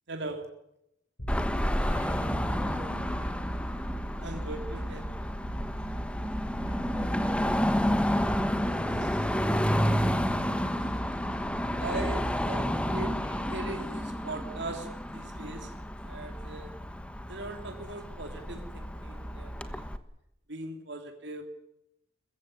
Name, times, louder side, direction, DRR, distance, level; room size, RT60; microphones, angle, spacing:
voice 1, 0.1-0.5 4.2-5.1 8.9-9.1 10.8-10.9 11.7-15.7 16.0-16.7 17.3-19.9 20.5-21.4, right 2 dB, 60° right, 5 dB, 2.9 m, -40 dB
sound 1, 1.2-14.5, equal, 50° left, 6.3 m, -40 dB
Car passing by / Traffic noise roadway noise / Engine, 1.3-20.0, equal, 5° left, 1.2 m, -30 dB
voice 2, 1.8-3.5 6.6-7.6 8.6-10.3, equal, 15° right, 2 dB, 4.9 m, -45 dB
22.5 x 15.0 x 9.9 m, 0.82 s
head